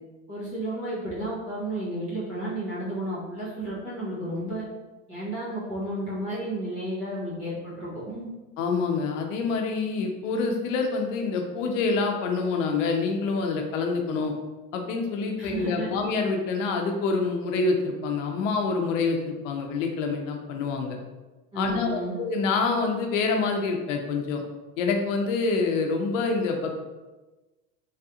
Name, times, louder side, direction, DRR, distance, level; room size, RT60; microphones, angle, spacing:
voice 1, 0.3-4.6 5.1-8.3 15.4-16.0 21.5-22.1, right 1 dB, 20° right, -8 dB, 0.4 m, -32 dB
voice 2, 8.6-14.3 14.7-21.0 21.6-24.4 24.8-26.9, left 4 dB, 70° left, 3 dB, 0.6 m, -26 dB
3.3 x 2.4 x 2.7 m, 1.2 s
supercardioid pair, 180°, 40 cm